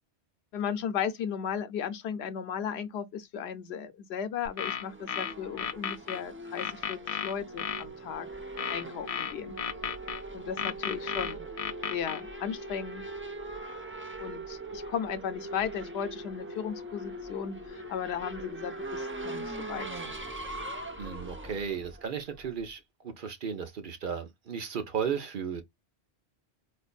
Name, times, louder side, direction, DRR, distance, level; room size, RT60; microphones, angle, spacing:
voice 1, 0.5-8.3 8.7-9.6 10.3-11.4 11.9-13.0 14.2-19.9 21.4-21.6, left 8 dB, 80° left, 0.9 m, -35 dB
sound 1, 4.4-6.2 6.6-7.8 8.6-10.2 10.6-12.2, left 8 dB, 55° left, 0.4 m, -33 dB
Race car auto racing / Accelerating revving vroom, 4.5-22.7, right 1 dB, 15° right, 0.4 m, -41 dB
voice 2, 21.0-22.8 23.2-25.6, right 7 dB, 55° right, 0.8 m, -34 dB
4.1 x 2.5 x 2.3 m
omnidirectional pair, 1.1 m